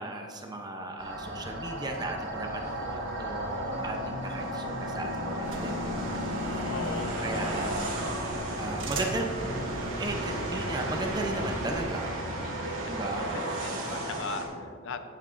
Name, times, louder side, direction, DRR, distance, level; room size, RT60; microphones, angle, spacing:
voice 1, 0.0-6.2 6.9-7.9 8.6-9.5 10.0-12.2 12.9-13.3, right 2 dB, 20° right, 3 dB, 0.6 m, -36 dB
sound 1, 1.0-14.4, right 1 dB, 85° right, 2.1 m, -34 dB
sound 2, 3.3-12.4, left 1 dB, 50° left, 2.3 m, -44 dB
sound 3, 5.4-11.8, right 1 dB, 65° right, 1.4 m, -37 dB
voice 2, 6.7-7.7 12.4-15.1, left 4 dB, 65° left, 9 dB, 0.6 m, -39 dB
14.5 x 8.7 x 2.5 m, 2.3 s
head